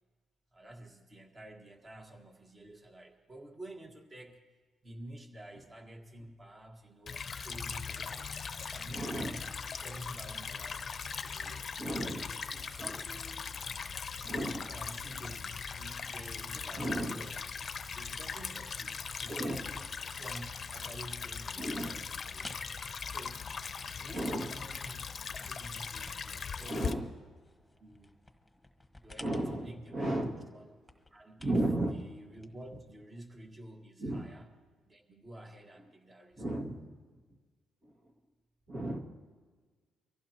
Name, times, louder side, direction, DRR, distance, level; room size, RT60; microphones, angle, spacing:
voice 1, 0.5-4.5 4.8-8.4 8.6-10.8 11.2-11.7 12.0-13.5 14.1-17.4 17.9-22.6 23.1-23.5 24.0-27.2 27.8-28.1 29.0-30.2 30.5-30.8 31.1-34.5 34.9-36.4, right 1 dB, 30° right, 3 dB, 1.8 m, -50 dB
Stream / Trickle dribble, 7.1-26.9, left 6 dB, 45° left, 0.7 m, -40 dB
voice 2, 8.9-9.4 11.8-12.2 14.2-14.6 16.8-17.2 19.3-19.6 21.6-21.9 24.1-24.5 26.7-27.1 29.2-30.4 31.4-31.9 34.0-34.2 36.4-36.9 37.8-37.9 38.7-39.0, right 1 dB, 50° right, 0 dB, 2.1 m, -34 dB
sound 1, 21.9-33.1, left 1 dB, 5° left, 1.4 m, -55 dB
24.5 x 15.5 x 3.0 m, 1.4 s
cardioid pair, 90°, 0 cm